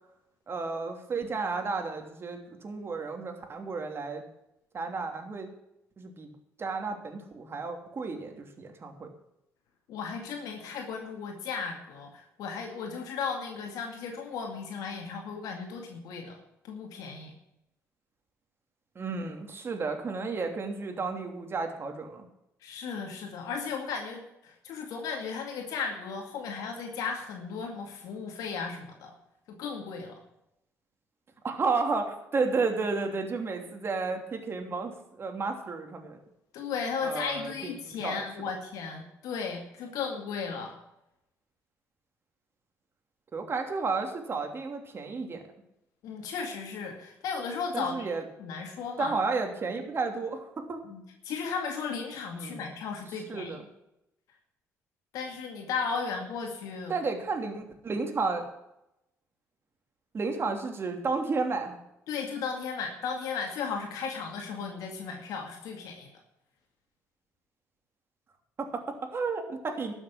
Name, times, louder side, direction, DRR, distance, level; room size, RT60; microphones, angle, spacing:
voice 1, 0.5-4.2 4.7-5.5 6.0-6.3 6.6-9.1 18.9-22.3 31.4-36.2 37.0-38.2 43.3-45.4 47.7-48.2 49.0-50.8 52.3-52.6 53.3-53.7 56.9-58.5 60.1-61.8 68.6-69.9, right 4 dB, 40° right, 4 dB, 2.9 m, -32 dB
voice 2, 9.9-16.4 16.6-17.3 22.6-29.1 29.5-30.2 36.5-40.8 46.0-48.1 48.4-49.2 50.8-53.6 55.1-56.9 62.1-66.1, left 5 dB, 80° left, 2 dB, 2.3 m, -35 dB
12.5 x 7.3 x 8.7 m, 0.85 s
supercardioid pair, 80°, 6 cm